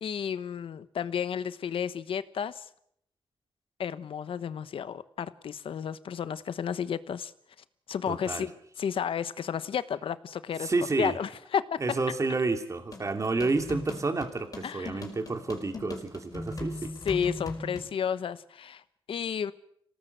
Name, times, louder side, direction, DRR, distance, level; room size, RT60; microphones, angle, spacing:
voice 1, 0.0-2.7 3.8-7.3 7.9-8.5 8.8-10.7 11.0-11.6 11.9-12.0 14.6-15.0 17.0-18.8 19.1-19.5, left 8 dB, 85° left, 14 dB, 1.1 m, -32 dB
voice 2, 8.1-8.5 10.6-11.2 11.8-16.9, right 3 dB, 35° right, 7 dB, 2.7 m, -30 dB
sound 1, 12.9-17.9, left 2 dB, 40° left, 5.1 m, -39 dB
25.5 x 18.0 x 8.0 m, 0.71 s
wide cardioid pair, 115°, 9 cm